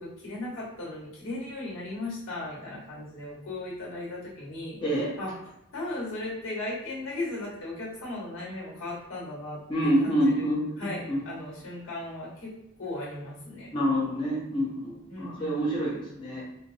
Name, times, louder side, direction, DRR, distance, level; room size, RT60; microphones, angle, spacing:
voice 1, 0.0-4.8 5.2-5.3 5.7-12.5 12.8-13.7 15.1-16.0, left 2 dB, 70° left, -5 dB, 1.4 m, -37 dB
voice 2, 4.8-5.1 9.7-11.2 13.7-16.4, equal, 25° left, -8 dB, 0.8 m, -27 dB
4.3 x 2.1 x 2.7 m, 0.86 s
head